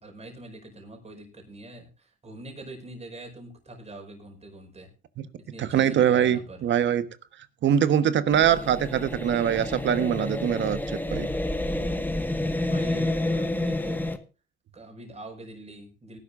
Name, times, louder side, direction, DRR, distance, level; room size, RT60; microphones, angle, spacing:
voice 1, 0.0-4.9 5.4-6.6 12.7-14.0 14.7-16.2, right 1 dB, 30° right, 5.4 m, -43 dB
voice 2, 5.6-7.1 7.6-11.3, right 9 dB, 65° right, 1.3 m, -23 dB
sound 1, 8.3-14.2, left 1 dB, 10° left, 1.6 m, -29 dB
19.0 x 11.5 x 2.6 m
cardioid pair, 90°, 20 cm